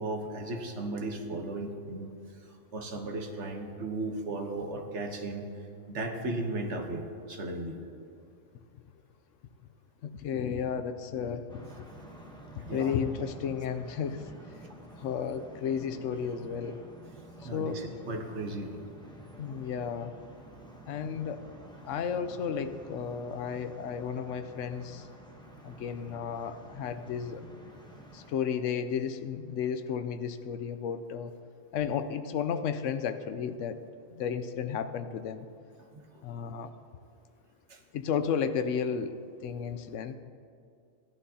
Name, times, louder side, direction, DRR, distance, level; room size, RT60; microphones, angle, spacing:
voice 1, 0.0-2.1 2.7-5.5 5.9-7.8 12.7-13.0 17.4-18.7 35.9-36.2 37.7-37.8, right 2 dB, 65° right, 3 dB, 1.3 m, -36 dB
voice 2, 10.0-11.9 12.7-14.2 15.0-16.8 17.5-17.8 19.4-20.1 20.9-21.4 21.8-25.1 25.6-27.4 28.1-31.3 31.7-33.8 34.1-35.5 36.2-36.7 37.9-39.2 39.4-40.1, left 7 dB, 75° left, 10 dB, 0.9 m, -33 dB
sound 1, 11.5-28.3, right 1 dB, 5° left, 0.9 m, -50 dB
16.0 x 11.0 x 2.8 m, 2.4 s
omnidirectional pair, 1.3 m